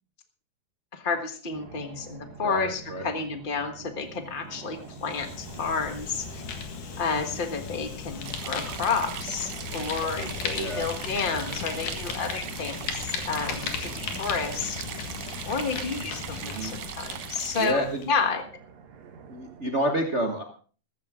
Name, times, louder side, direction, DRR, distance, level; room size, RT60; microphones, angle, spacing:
voice 1, 0.9-6.4 7.0-14.8 15.4-18.4, left 5 dB, 55° left, 7 dB, 0.5 m, -31 dB
sound 1, 1.5-19.8, right 5 dB, 65° right, 2.3 m, -48 dB
voice 2, 2.4-3.0 10.6-10.9 16.4-16.7 17.6-18.0 19.3-20.4, right 1 dB, 40° right, 3 dB, 0.9 m, -29 dB
Fire, 4.8-18.1, left 5 dB, 85° left, 3.4 m, -36 dB
sound 2, 8.2-17.7, right 13 dB, 90° right, 2.3 m, -40 dB
15.0 x 14.0 x 3.7 m, 0.39 s
omnidirectional pair, 3.5 m